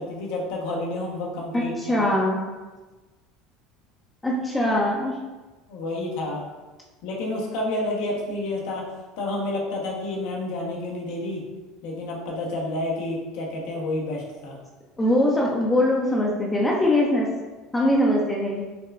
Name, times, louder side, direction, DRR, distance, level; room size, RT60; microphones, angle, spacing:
voice 1, 0.0-1.9 5.7-6.4 7.0-8.9 9.2-11.4 11.8-14.6, left 2 dB, 70° left, -1 dB, 1.0 m, -29 dB
voice 2, 1.5-2.4 4.2-5.2 15.0-17.4 17.7-18.6, left 1 dB, 15° left, -3 dB, 0.6 m, -22 dB
6.5 x 2.2 x 2.4 m, 1.2 s
supercardioid pair, 105°, 0 cm